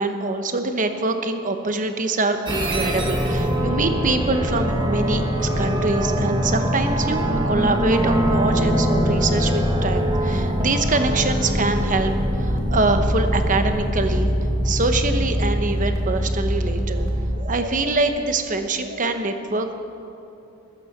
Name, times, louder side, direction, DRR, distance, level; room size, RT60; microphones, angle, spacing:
voice 1, 0.0-14.3 14.6-17.1 17.4-19.7, right 2 dB, 40° right, 7 dB, 1.0 m, -24 dB
sound 1, 2.5-17.1, equal, 20° right, 1.5 m, -23 dB
sound 2, 12.3-17.4, right 1 dB, 85° right, 2.8 m, -25 dB
15.0 x 12.0 x 6.7 m, 2.7 s
head